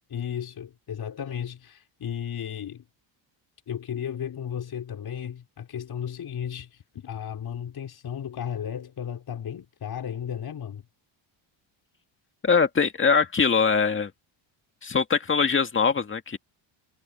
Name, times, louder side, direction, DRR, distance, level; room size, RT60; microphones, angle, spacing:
voice 1, 0.1-2.8 3.7-10.8, left 8 dB, 50° left, 4.8 m, -34 dB
voice 2, 12.4-14.1 14.8-16.4, left 5 dB, 25° left, 2.1 m, -22 dB
cardioid pair, 125°, 48 cm